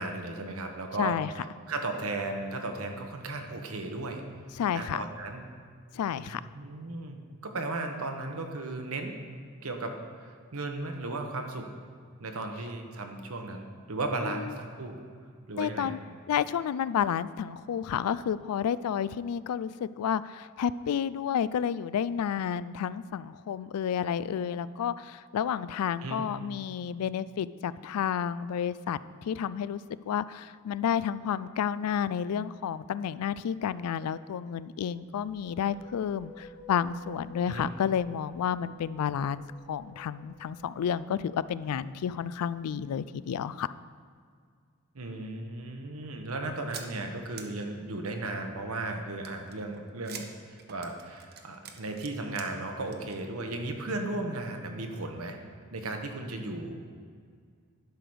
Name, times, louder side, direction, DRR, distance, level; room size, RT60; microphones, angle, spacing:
voice 1, 0.0-4.2 4.7-5.4 6.2-7.2 7.4-9.2 9.6-11.7 12.2-15.0 15.5-16.0 26.0-26.2 37.5-37.7 44.9-55.4 55.7-56.8, right 2 dB, 70° right, 4 dB, 1.1 m, -35 dB
voice 2, 1.0-1.3 4.6-5.0 5.9-6.4 14.2-14.5 15.6-16.0 16.3-29.8 30.1-39.4 39.7-43.7, left 8 dB, 90° left, 16 dB, 0.3 m, -31 dB
sound 1, 35.1-42.7, left 2 dB, 50° left, 2.8 m, -54 dB
sound 2, 46.7-46.9 47.3-47.4 49.2-52.5 52.8-53.2 53.5-53.6 53.9-54.0, right 7 dB, 45° right, 0.8 m, -45 dB
11.5 x 5.0 x 6.2 m, 2.1 s
head